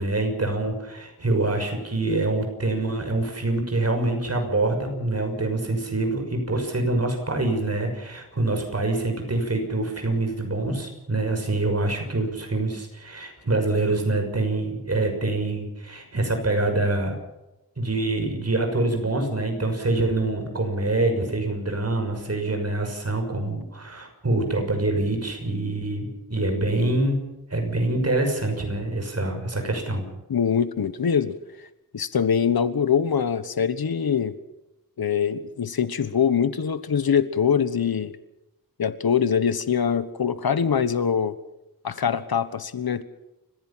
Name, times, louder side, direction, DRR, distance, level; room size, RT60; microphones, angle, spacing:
voice 1, 0.0-17.1 17.8-27.2 27.5-30.1, right 2 dB, 45° right, 4 dB, 6.2 m, -25 dB
voice 2, 30.3-31.4 31.9-34.3 35.0-38.2 38.8-41.3 41.8-43.0, left 7 dB, 85° left, 13 dB, 1.3 m, -23 dB
29.5 x 15.5 x 5.8 m, 0.93 s
wide cardioid pair, 90°, 36 cm